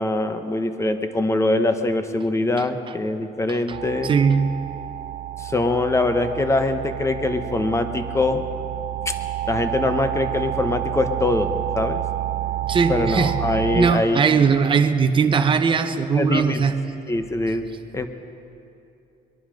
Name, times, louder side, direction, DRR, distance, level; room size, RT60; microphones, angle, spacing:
voice 1, 0.0-4.2 5.4-8.4 9.0-9.1 9.5-12.0 12.9-14.2 16.1-16.7 17.1-18.1, left 2 dB, 15° left, 8 dB, 1.0 m, -23 dB
sound 1, 3.7-14.0, right 13 dB, 55° right, 0.5 m, -29 dB
voice 2, 4.0-4.6 12.7-13.4 13.7-16.8, right 5 dB, 30° right, 7 dB, 0.8 m, -20 dB
22.0 x 11.0 x 5.2 m, 2.7 s
cardioid pair, 110°, 17 cm